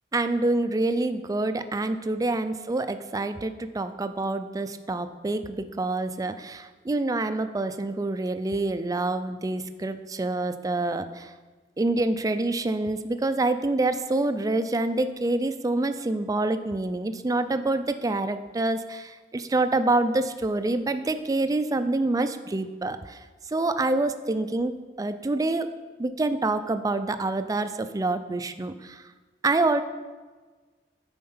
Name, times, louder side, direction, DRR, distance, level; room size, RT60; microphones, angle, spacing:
voice 1, 0.1-11.3 11.8-23.2 23.5-25.7 26.0-29.0 29.4-29.8, right 2 dB, 20° right, 10 dB, 0.4 m, -26 dB
9.3 x 4.4 x 5.5 m, 1.3 s
head